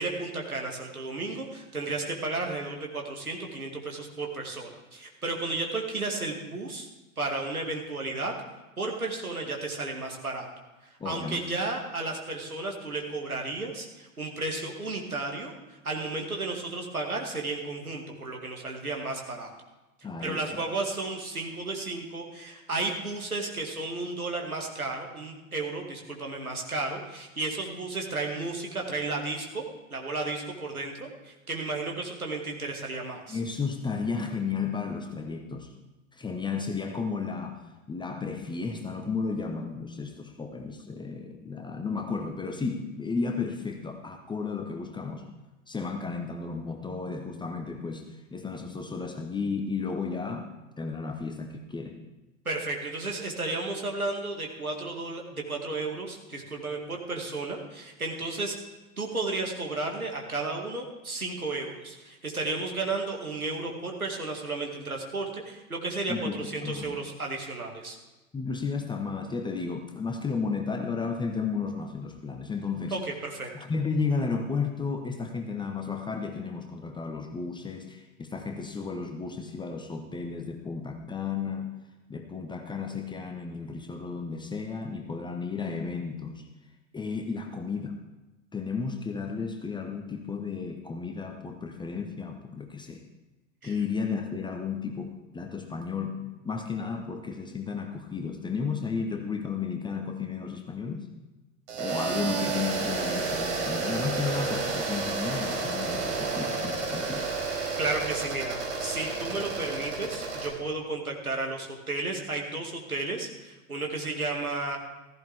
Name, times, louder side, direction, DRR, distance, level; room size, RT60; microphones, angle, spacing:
voice 1, 0.0-6.9 7.2-8.3 8.8-10.5 11.0-15.5 15.8-19.5 20.2-29.6 29.9-33.4 52.5-58.5 59.0-68.0 72.9-73.5 93.6-93.7 107.8-114.8, right 3 dB, 85° right, 1 dB, 2.1 m, -33 dB
voice 2, 11.0-11.4 20.0-20.6 33.3-35.7 36.1-37.6 37.9-45.3 45.7-50.5 50.8-52.0 66.1-67.0 68.3-73.0 73.5-81.8 82.1-86.5 86.9-88.0 88.5-93.0 93.6-101.1 101.8-107.3, left 5 dB, 10° left, 4 dB, 1.0 m, -33 dB
sound 1, 101.7-110.5, right 4 dB, 55° right, 4.5 m, -31 dB
15.0 x 14.5 x 3.5 m, 1.1 s
figure-of-eight pair, 90°, 42 cm